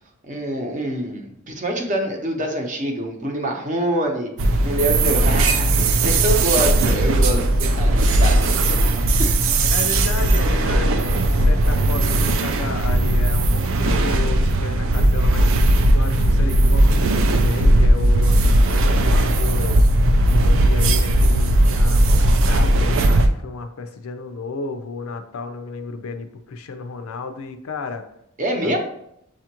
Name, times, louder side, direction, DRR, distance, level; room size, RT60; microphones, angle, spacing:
voice 1, 0.2-4.3 4.6-8.9 9.2-9.4 28.4-28.8, right 1 dB, 35° right, 2 dB, 0.8 m, -25 dB
sound 1, 4.4-23.3, right 1 dB, 60° right, 0.4 m, -17 dB
voice 2, 9.6-15.5 15.9-19.8 20.3-28.0 28.6-28.8, left 4 dB, 70° left, 7 dB, 0.5 m, -32 dB
7.3 x 2.5 x 2.9 m, 0.77 s
head